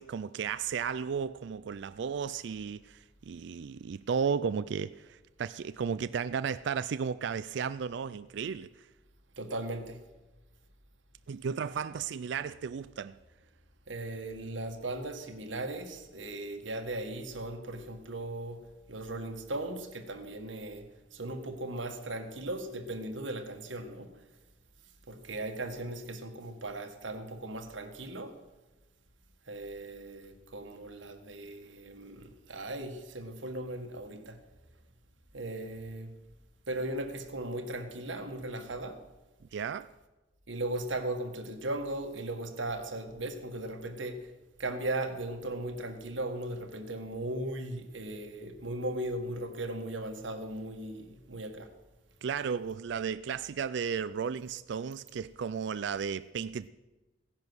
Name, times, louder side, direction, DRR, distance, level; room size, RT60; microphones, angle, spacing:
voice 1, 0.0-8.7 11.3-13.1 39.5-39.9 52.2-56.7, right 6 dB, 65° right, 0.4 m, -34 dB
voice 2, 9.4-10.0 13.9-18.6 18.9-24.1 25.1-28.4 29.5-34.4 35.3-36.1 36.7-39.0 40.5-44.3 44.6-51.7, right 1 dB, 80° right, 1.7 m, -37 dB
17.0 x 10.5 x 6.3 m
head